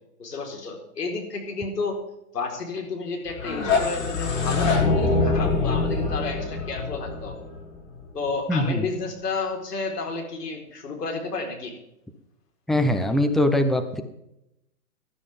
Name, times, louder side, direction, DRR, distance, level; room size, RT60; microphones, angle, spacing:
voice 1, 0.2-2.0 2.3-7.4 8.1-11.7, left 4 dB, 80° left, 2 dB, 4.7 m, -31 dB
sound 1, 3.3-8.2, left 3 dB, 55° left, 6.4 m, -24 dB
voice 2, 8.5-8.9 12.7-14.0, left 1 dB, ahead, 7 dB, 0.7 m, -22 dB
19.0 x 12.5 x 3.7 m, 0.82 s
hypercardioid pair, 130°, 46 cm